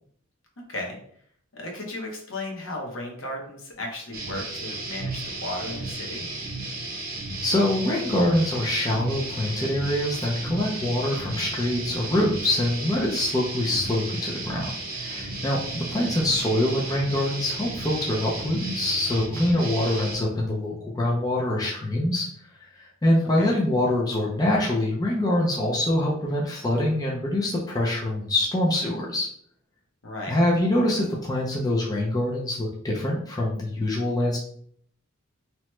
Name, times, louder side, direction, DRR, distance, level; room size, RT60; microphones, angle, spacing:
voice 1, 0.6-1.0 1.5-6.3 16.0-16.1 23.4-23.6 30.0-30.4, left 1 dB, 65° left, 0 dB, 0.8 m, -35 dB
sound 1, 4.1-20.2, right 2 dB, 45° right, 0.7 m, -34 dB
voice 2, 7.4-14.7 15.0-22.3 22.7-29.3 30.3-34.4, left 1 dB, 20° left, -3 dB, 0.4 m, -24 dB
2.9 x 2.1 x 3.0 m, 0.63 s
head